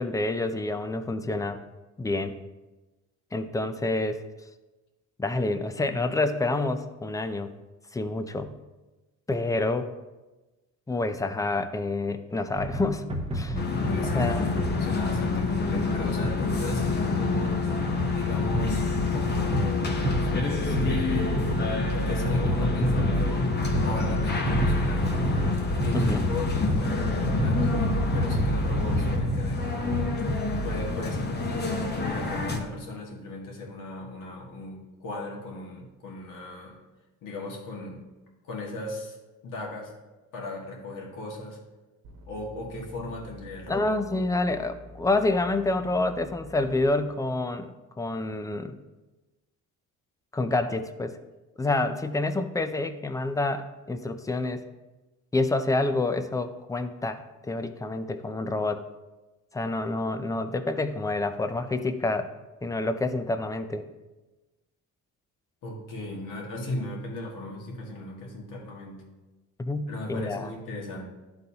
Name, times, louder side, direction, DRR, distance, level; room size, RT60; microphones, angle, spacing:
voice 1, 0.0-1.6 2.0-2.4 3.3-4.2 5.2-7.5 7.9-8.5 9.3-9.9 10.9-13.0 13.3-13.6 14.1-14.5 25.9-26.2 43.7-48.8 50.3-51.2 51.6-54.6 55.3-58.8 59.5-62.3 62.6-63.9 69.6-70.5, left 2 dB, 10° left, 9 dB, 0.4 m, -28 dB
sound 1, 12.6-30.9, right 1 dB, 15° right, 0.9 m, -30 dB
sound 2, 13.5-32.6, left 4 dB, 30° left, 0.9 m, -28 dB
voice 2, 13.7-14.5 14.8-17.6 18.1-18.8 19.1-21.3 21.9-23.5 23.8-25.4 25.8-30.1 30.6-36.8 37.2-38.0 38.4-39.2 39.4-39.9 40.3-41.6 42.3-43.9 65.6-69.0 69.9-71.0, left 2 dB, 70° left, -2 dB, 1.8 m, -36 dB
sound 3, 42.0-46.9, left 1 dB, 85° right, 1.1 m, -48 dB
11.0 x 4.0 x 2.8 m, 1.1 s
cardioid pair, 105°, 33 cm